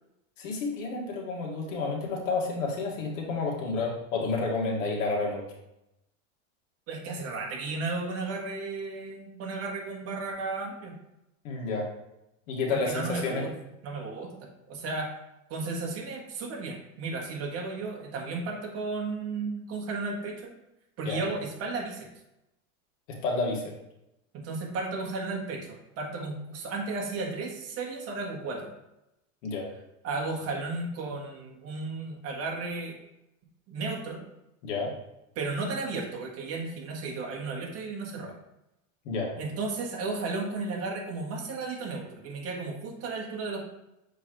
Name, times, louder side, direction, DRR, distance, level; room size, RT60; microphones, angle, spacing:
voice 1, 0.4-5.4 11.4-11.9 12.5-13.4 21.1-21.2 23.2-23.6 29.4-29.6 34.6-34.9 39.1-39.3, left 3 dB, 90° left, 0 dB, 1.8 m, -30 dB
voice 2, 6.9-10.9 12.7-13.5 13.8-15.1 15.5-20.5 21.0-22.1 24.3-28.7 30.0-33.0 33.7-34.2 35.3-38.3 39.4-43.6, right 3 dB, 40° right, 0 dB, 1.5 m, -34 dB
6.9 x 4.6 x 3.1 m, 0.86 s
supercardioid pair, 145°, 37 cm